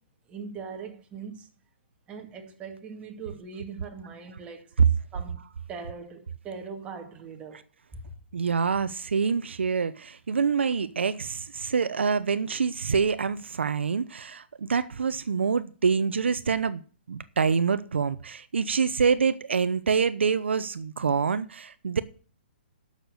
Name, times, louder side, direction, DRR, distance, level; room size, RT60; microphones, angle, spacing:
voice 1, 0.3-1.5 2.1-4.7 5.1-5.4 5.7-7.6 7.9-8.0, right 5 dB, 20° right, 2.3 m, -40 dB
voice 2, 8.3-16.8 17.1-22.0, right 5 dB, 85° right, 0.8 m, -26 dB
11.5 x 6.8 x 6.7 m
hypercardioid pair, 145°, 6 cm